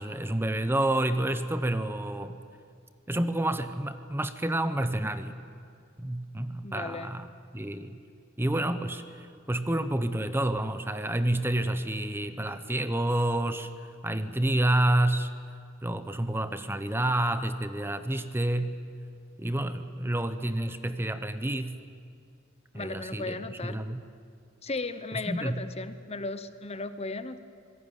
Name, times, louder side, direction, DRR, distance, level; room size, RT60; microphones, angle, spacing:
voice 1, 0.0-2.4 3.1-5.4 6.0-7.3 7.5-8.0 8.4-15.3 15.8-18.8 19.4-21.8 22.7-24.0 25.1-25.6, right 1 dB, 10° right, 10 dB, 0.8 m, -29 dB
voice 2, 6.6-7.1 22.7-23.9 24.6-27.4, left 3 dB, 30° left, 11 dB, 0.9 m, -36 dB
26.5 x 18.5 x 9.3 m, 2.3 s
head